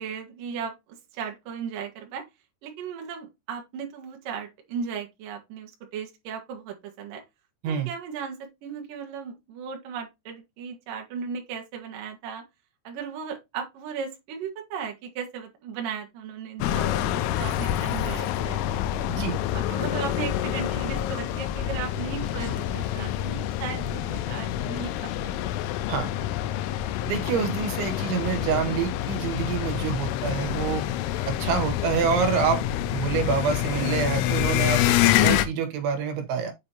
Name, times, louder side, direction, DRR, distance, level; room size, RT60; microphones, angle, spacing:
voice 1, 0.0-2.2 2.6-7.2 7.7-12.4 12.8-18.6 19.5-25.5, right 6 dB, 60° right, 2.7 m, -36 dB
sound 1, 16.6-35.5, left 12 dB, 85° left, 3.2 m, -27 dB
voice 2, 27.1-30.8 31.3-32.6 32.9-36.5, right 6 dB, 75° right, 3.8 m, -27 dB
8.2 x 5.5 x 2.8 m
omnidirectional pair, 5.5 m